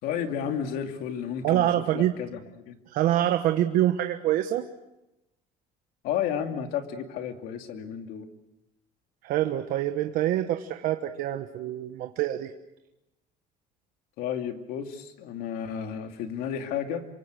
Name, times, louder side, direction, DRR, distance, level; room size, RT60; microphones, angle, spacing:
voice 1, 0.0-1.7 1.9-2.8 6.0-8.3 14.2-17.1, left 8 dB, 70° left, 6 dB, 2.6 m, -32 dB
voice 2, 1.4-2.2 2.9-4.7 9.2-12.5, right 12 dB, 60° right, 7 dB, 1.2 m, -25 dB
28.0 x 24.0 x 6.4 m, 0.92 s
cardioid pair, 165°, 16 cm